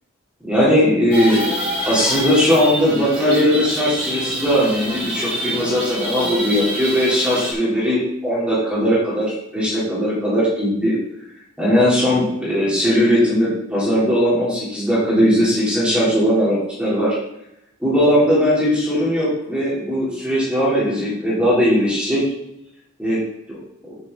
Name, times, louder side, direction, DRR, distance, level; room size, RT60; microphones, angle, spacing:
voice 1, 0.4-1.5 1.8-9.2 9.5-11.0 11.6-17.2 17.8-22.2 23.0-23.2 23.5-23.6, equal, 5° right, -8 dB, 3.1 m, -18 dB
sound 1, 1.1-7.5, equal, 25° right, 2.9 m, -27 dB
8.7 x 7.8 x 3.8 m, 0.83 s
head